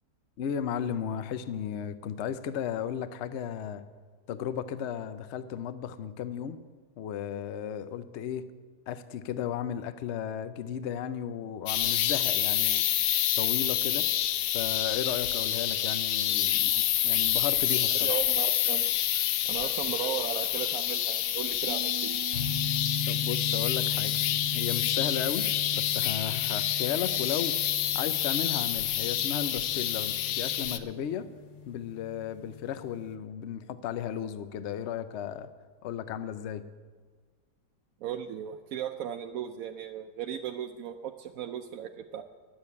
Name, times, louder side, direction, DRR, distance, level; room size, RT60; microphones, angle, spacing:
voice 1, 0.4-3.8 4.3-6.6 7.0-8.5 8.9-12.8 13.4-14.1 14.5-18.2 23.1-24.1 24.5-27.6 27.9-31.3 31.7-35.5 35.8-36.6, left 9 dB, 70° left, 12 dB, 0.6 m, -35 dB
sound 1, 11.7-30.8, left 12 dB, 90° left, 1.3 m, -28 dB
voice 2, 18.0-18.8 19.5-22.2 38.0-42.2, right 10 dB, 70° right, 6 dB, 0.8 m, -36 dB
Piano, 21.7-27.3, right 12 dB, 90° right, 1.5 m, -47 dB
sound 2, 22.3-33.1, left 6 dB, 50° left, 1.1 m, -39 dB
10.5 x 7.5 x 9.5 m, 1.5 s
omnidirectional pair, 1.9 m